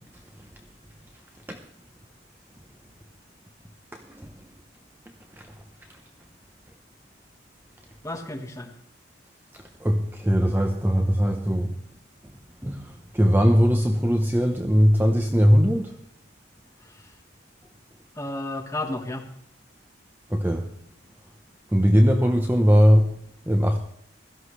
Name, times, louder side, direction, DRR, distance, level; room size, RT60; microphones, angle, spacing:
voice 1, 3.9-4.3 9.8-11.8 12.6-15.9 20.3-20.7 21.7-23.1 23.5-23.8, equal, 10° right, 4 dB, 0.7 m, -20 dB
voice 2, 8.0-8.7 16.8-17.1 18.1-19.3, left 2 dB, 15° left, 2 dB, 1.5 m, -33 dB
16.5 x 13.5 x 3.3 m, 0.71 s
head